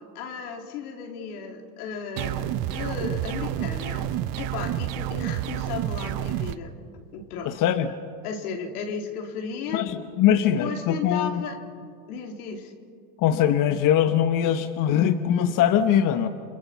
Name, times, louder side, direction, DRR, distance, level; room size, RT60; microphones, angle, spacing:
voice 1, 0.0-4.1 4.4-6.7 7.1-7.7 8.2-9.8 10.3-11.6 12.1-12.7, left 5 dB, 85° left, 3 dB, 3.3 m, -35 dB
sound 1, 2.2-6.6, right 12 dB, 55° right, 1.0 m, -29 dB
voice 2, 7.4-7.9 9.7-11.4 13.2-16.3, left 9 dB, 45° left, 8 dB, 1.2 m, -22 dB
29.5 x 25.0 x 5.8 m, 2.2 s
supercardioid pair, 110°, 44 cm